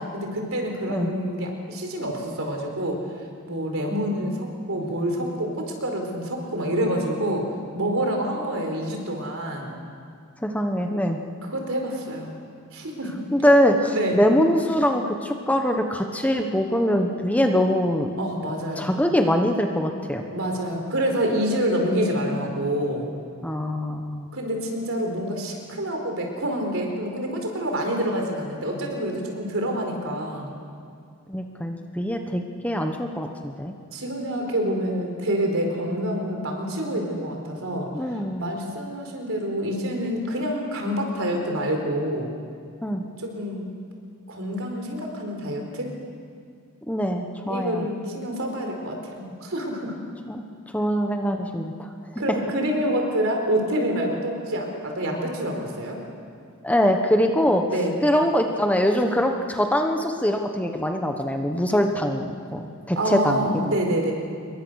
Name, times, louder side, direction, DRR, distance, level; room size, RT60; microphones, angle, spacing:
voice 1, 0.0-3.0 3.4-7.4 7.7-9.7 11.4-12.3 12.7-13.2 13.9-14.2 18.2-18.9 20.3-23.1 24.3-30.5 33.9-37.9 38.4-42.3 43.2-43.7 44.3-45.9 47.5-49.9 52.2-56.0 57.7-57.9 63.0-64.1, equal, 65° right, 2 dB, 4.7 m, -27 dB
voice 2, 10.4-11.2 13.3-18.1 18.8-20.2 23.4-24.3 31.3-33.7 37.9-38.5 42.8-43.0 46.9-47.9 50.3-50.4 50.7-51.9 56.6-57.6 58.0-62.6 62.9-63.7, equal, 5° left, 4 dB, 1.2 m, -23 dB
27.5 x 22.5 x 6.5 m, 2.3 s
head